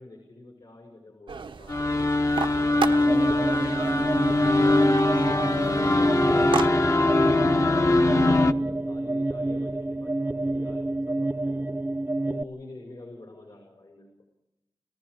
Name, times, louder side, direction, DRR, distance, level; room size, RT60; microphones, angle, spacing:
voice 1, 0.0-1.9 2.4-5.5 5.9-7.7 8.1-11.7 12.2-14.1, left 2 dB, 75° left, 1 dB, 5.2 m, -46 dB
sound 1, 1.3-6.7, right 5 dB, 90° right, 0.8 m, -35 dB
sound 2, 1.7-8.5, left 2 dB, 35° left, 0.7 m, -22 dB
sound 3, 3.0-12.4, right 2 dB, 25° right, 0.6 m, -28 dB
30.0 x 14.5 x 6.3 m, 0.94 s
wide cardioid pair, 60°, 8 cm